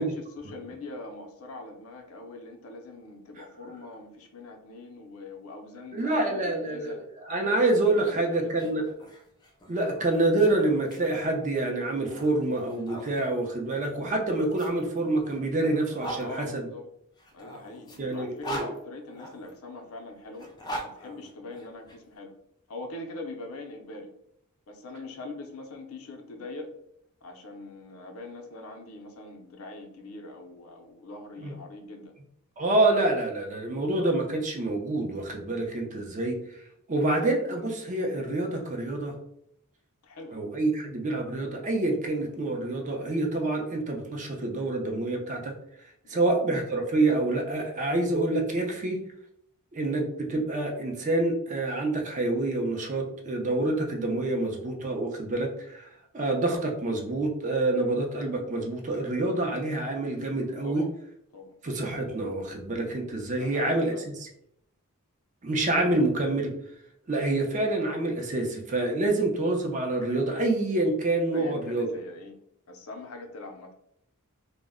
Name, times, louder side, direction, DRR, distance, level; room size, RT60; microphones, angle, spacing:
voice 1, 0.0-7.0 8.0-8.6 16.2-16.9 17.3-20.5 20.8-22.3 22.7-24.1 24.7-26.7 27.2-32.1 40.0-40.4 46.0-46.4 60.6-60.9 61.3-61.6 63.3-64.1 71.3-72.4 72.7-73.7, left 2 dB, 70° left, 4 dB, 0.5 m, -42 dB
voice 2, 5.9-6.9 7.2-8.8 9.7-16.7 18.0-18.6 31.4-31.5 32.6-36.4 36.9-39.1 40.3-45.5 46.1-49.0 49.7-55.9 56.1-60.8 61.6-64.3 65.4-66.5 67.1-71.9, right 2 dB, 35° right, 2 dB, 0.5 m, -27 dB
sound 1, 8.4-13.1 14.0-16.2 17.2-19.5 20.3-22.0, equal, 20° left, 0.4 m, -41 dB
2.1 x 2.0 x 3.5 m, 0.74 s
head